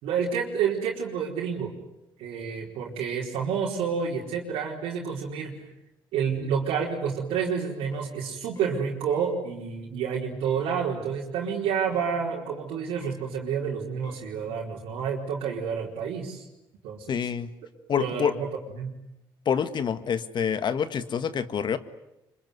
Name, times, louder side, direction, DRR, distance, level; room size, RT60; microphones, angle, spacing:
voice 1, 0.0-1.7 2.2-5.5 6.1-16.4 16.8-17.1 18.0-18.5 18.7-18.9, right 7 dB, 85° right, -4 dB, 4.7 m, -29 dB
sound 1, 6.7-7.0 7.3-7.6 7.9-8.2 8.6-8.8 9.1-9.4 10.5-10.7 11.9-12.2 13.0-13.3 14.0-14.3, left 1 dB, 40° left, 6.2 m, -51 dB
voice 2, 17.1-17.5 17.9-18.3 19.5-21.8, left 7 dB, 55° left, 12 dB, 1.7 m, -27 dB
25.5 x 24.5 x 9.6 m, 0.90 s
supercardioid pair, 80°, 9 cm